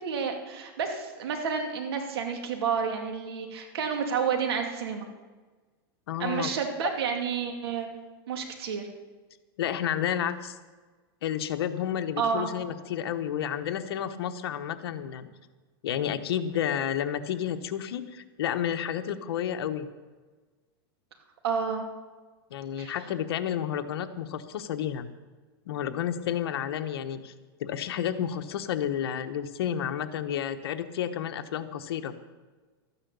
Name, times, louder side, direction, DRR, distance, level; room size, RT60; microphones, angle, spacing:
voice 1, 0.0-5.1 6.2-7.9 8.3-8.9 12.2-12.5 21.4-21.8 22.8-23.0, right 6 dB, 75° right, 3 dB, 2.6 m, -30 dB
voice 2, 6.1-6.5 9.6-10.6 11.2-15.3 15.8-19.9 22.5-25.1 25.7-27.3 27.6-32.1, left 9 dB, 75° left, 9 dB, 1.1 m, -31 dB
13.0 x 10.0 x 6.9 m, 1.3 s
supercardioid pair, 145°, 13 cm